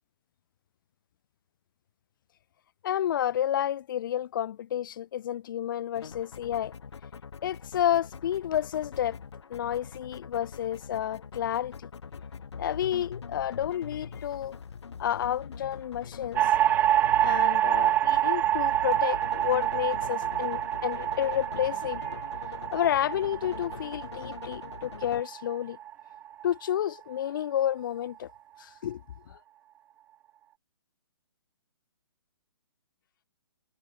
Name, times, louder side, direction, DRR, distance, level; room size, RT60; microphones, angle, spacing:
voice 1, 2.8-6.7 7.4-9.2 9.5-11.7 12.6-14.6 15.0-16.4 17.2-22.2 22.7-25.8 26.4-28.3 28.6-29.0 29.3-29.4, left 11 dB, 50° left, 4.0 m, -30 dB
sound 1, 5.9-25.2, left 6 dB, 85° left, 2.7 m, -43 dB
sound 2, 16.4-26.7, right 12 dB, 10° right, 0.6 m, -27 dB
hypercardioid pair, 155°, 14 cm